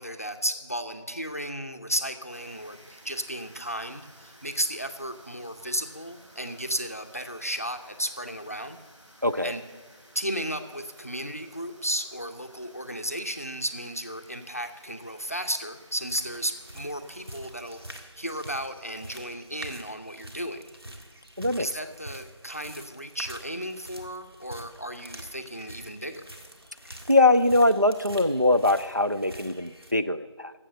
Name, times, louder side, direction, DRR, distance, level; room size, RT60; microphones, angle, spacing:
voice 1, 0.0-8.8 9.4-9.6 10.1-20.6 21.6-26.2, equal, 30° left, 7 dB, 0.6 m, -34 dB
sound 1, 2.3-17.9, equal, 90° right, 3.7 m, -55 dB
voice 2, 9.2-9.5 21.4-21.7 27.1-30.5, left 2 dB, 40° right, 9 dB, 0.4 m, -22 dB
sound 2, 15.9-29.9, right 1 dB, 55° right, 1.7 m, -46 dB
13.0 x 7.5 x 7.8 m, 1.4 s
figure-of-eight pair, 180°, 16 cm